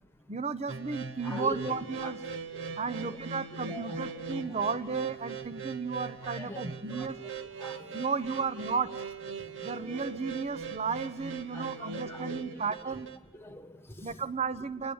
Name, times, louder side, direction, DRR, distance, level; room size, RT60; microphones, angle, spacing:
voice 1, 0.3-2.2 2.8-7.2 7.9-8.9 9.6-13.1 14.0-14.9, right 5 dB, 30° right, 15 dB, 0.8 m, -34 dB
sound 1, 0.7-13.2, right 5 dB, 65° right, 1.3 m, -40 dB
voice 2, 1.2-1.6 2.0-2.1 2.5-3.2 3.6-4.6 6.2-7.1 7.6-8.0 9.4-10.0 11.5-12.6 13.3-14.2, left 1 dB, 10° left, 8 dB, 1.5 m, -44 dB
28.0 x 19.5 x 7.2 m, 1.1 s
head